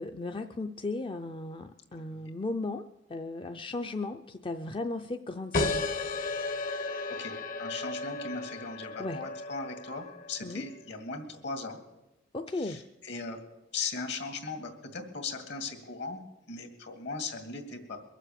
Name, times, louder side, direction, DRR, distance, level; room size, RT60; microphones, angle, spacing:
voice 1, 0.0-5.9 9.0-9.2 10.4-10.6 12.3-12.8, left 2 dB, 25° left, 6 dB, 0.5 m, -36 dB
voice 2, 1.9-2.3 7.2-7.3 7.6-11.8 12.6-13.4 13.7-16.2 16.5-18.0, left 4 dB, 65° left, 6 dB, 2.3 m, -38 dB
sound 1, 5.5-10.7, left 3 dB, 50° left, 1.0 m, -34 dB
22.5 x 7.5 x 6.8 m, 1.0 s
head